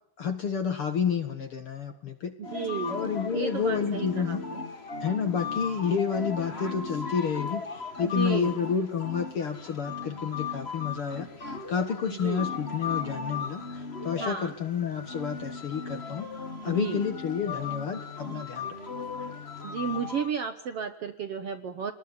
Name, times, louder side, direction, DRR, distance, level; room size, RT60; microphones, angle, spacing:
voice 1, 0.2-2.3 2.9-4.4 5.0-7.6 8.0-11.3 11.7-16.3 16.6-18.7, left 6 dB, 50° left, 8 dB, 2.0 m, -30 dB
sound 1, 2.4-20.3, left 5 dB, 30° left, 1.1 m, -37 dB
voice 2, 2.4-3.0 3.3-4.7 8.0-8.6 12.1-12.5 14.2-14.5 16.6-17.0 19.6-21.9, right 6 dB, 55° right, 8 dB, 1.8 m, -33 dB
28.5 x 20.0 x 9.7 m, 0.74 s
omnidirectional pair, 4.0 m